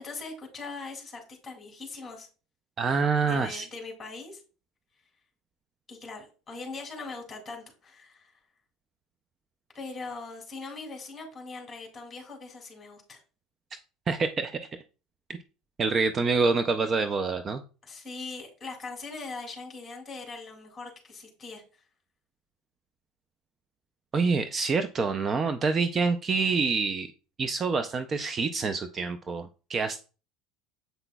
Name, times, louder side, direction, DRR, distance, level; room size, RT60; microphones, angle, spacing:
voice 1, 0.0-2.3 3.2-4.4 5.9-8.3 9.7-13.2 17.9-21.6, left 3 dB, 15° left, 1 dB, 2.7 m, -41 dB
voice 2, 2.8-3.7 14.1-14.6 15.8-17.6 24.1-27.1 27.4-30.0, right 4 dB, 30° right, 9 dB, 0.4 m, -26 dB
7.9 x 5.8 x 2.3 m, 0.35 s
supercardioid pair, 125°, 0 cm